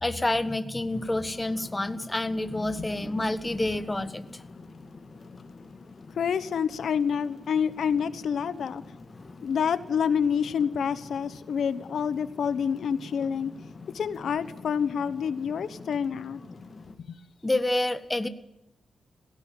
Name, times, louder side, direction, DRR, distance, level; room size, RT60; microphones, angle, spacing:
voice 1, 0.0-4.4 9.2-9.3 17.4-18.3, left 1 dB, 15° left, 11 dB, 1.2 m, -28 dB
sound 1, 0.9-17.0, left 3 dB, 40° left, 2.0 m, -47 dB
voice 2, 6.2-8.8 9.4-13.5 13.9-16.4 17.0-17.2, left 7 dB, 75° left, 14 dB, 1.2 m, -28 dB
17.0 x 16.0 x 9.3 m, 0.87 s
wide cardioid pair, 135°, 0 cm